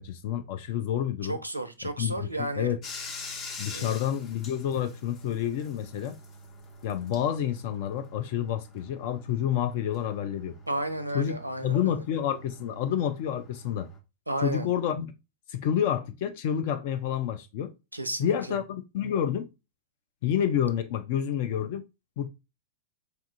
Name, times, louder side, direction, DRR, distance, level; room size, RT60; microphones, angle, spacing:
voice 1, 0.0-1.4 2.0-2.8 3.6-6.2 6.8-10.6 11.1-11.3 11.6-13.9 14.4-15.1 15.5-17.7 18.2-19.5 20.2-21.8 22.2-22.3, left 9 dB, 50° left, 0.4 m, -29 dB
voice 2, 1.2-2.7 3.6-4.0 10.7-12.0 14.3-14.7 17.9-18.6, right 1 dB, 85° right, 0.4 m, -33 dB
Bathtub (filling or washing), 2.8-14.0, left 2 dB, 30° left, 0.7 m, -45 dB
4.4 x 2.4 x 2.5 m
figure-of-eight pair, 90°, 0 cm